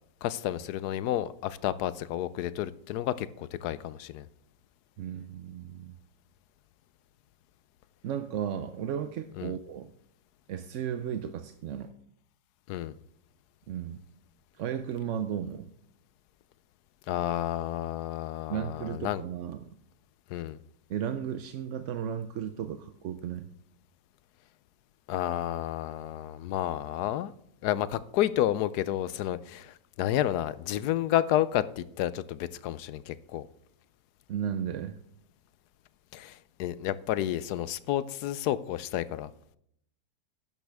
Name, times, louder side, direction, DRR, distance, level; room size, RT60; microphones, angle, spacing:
voice 1, 0.2-4.3 9.4-9.5 12.7-13.0 17.1-19.2 20.3-20.6 25.1-27.3 27.6-33.5 36.1-39.3, left 12 dB, 80° left, 16 dB, 1.1 m, -30 dB
voice 2, 5.0-6.0 8.0-9.9 10.5-11.9 13.7-14.0 14.6-15.7 18.5-19.7 20.9-23.5 34.3-35.0, right 9 dB, 60° right, 9 dB, 0.8 m, -34 dB
12.5 x 10.5 x 3.5 m, 0.73 s
omnidirectional pair, 1.7 m